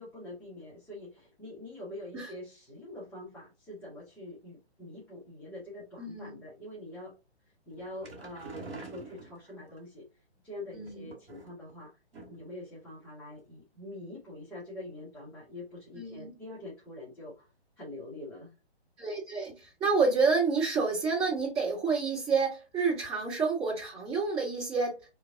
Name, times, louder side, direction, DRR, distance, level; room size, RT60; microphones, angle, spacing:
voice 1, 0.0-7.1 7.7-10.0 10.4-11.9 12.3-17.5 17.8-18.5, left 1 dB, 5° left, -9 dB, 1.0 m, -45 dB
voice 2, 6.0-6.4 10.7-11.1 16.0-16.3 19.0-25.0, right 4 dB, 15° right, -5 dB, 2.2 m, -29 dB
sound 1, 7.7-9.8 10.8-11.7 12.1-12.6 12.8-12.9 13.3-13.4, right 2 dB, 60° right, 2.1 m, -46 dB
3.3 x 3.1 x 3.6 m, 0.30 s
figure-of-eight pair, 130°, 33 cm